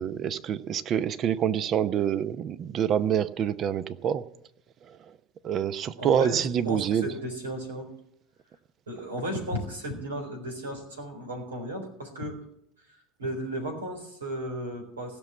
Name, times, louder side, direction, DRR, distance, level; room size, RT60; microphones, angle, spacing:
voice 1, 0.0-4.2 5.4-7.0, right 9 dB, 45° right, 14 dB, 0.8 m, -26 dB
voice 2, 6.0-7.9 8.9-12.4 13.2-15.2, equal, 85° right, 2 dB, 4.1 m, -35 dB
16.5 x 6.3 x 9.5 m, 0.73 s
hypercardioid pair, 75°, 0 cm